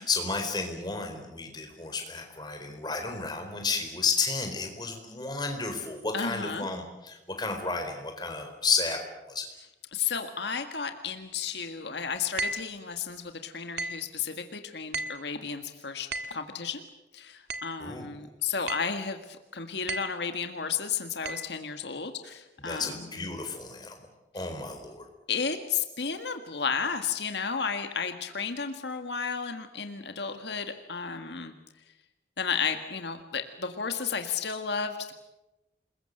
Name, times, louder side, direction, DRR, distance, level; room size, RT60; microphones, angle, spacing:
voice 1, 0.0-9.5 17.8-18.1 22.6-23.9 24.3-25.0, left 4 dB, 25° left, 4 dB, 4.4 m, -32 dB
voice 2, 6.1-6.7 9.9-16.8 17.1-23.3 24.4-24.5 25.3-31.5 32.4-35.1, left 6 dB, 75° left, 6 dB, 1.7 m, -33 dB
sound 1, 12.4-12.8 13.8-14.1 14.9-15.3 16.1-16.4 17.5-17.8 18.7-19.0 19.9-20.2 21.2-21.5, right 2 dB, 65° right, 1.7 m, -35 dB
28.0 x 21.5 x 7.8 m, 1.0 s
head